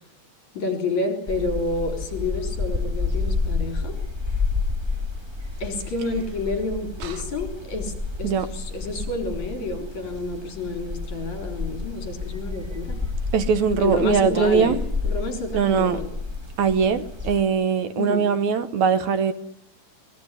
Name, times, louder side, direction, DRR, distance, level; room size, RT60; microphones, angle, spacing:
voice 1, 0.6-4.0 5.6-7.9 8.2-13.0 13.8-16.1 18.0-18.3, left 2 dB, 65° left, 5.0 m, -29 dB
sound 1, 1.3-17.4, left 4 dB, 10° right, 1.3 m, -30 dB
voice 2, 13.3-14.8 15.5-16.0 16.6-19.3, right 6 dB, 70° right, 2.3 m, -21 dB
23.5 x 19.0 x 9.9 m
omnidirectional pair, 3.7 m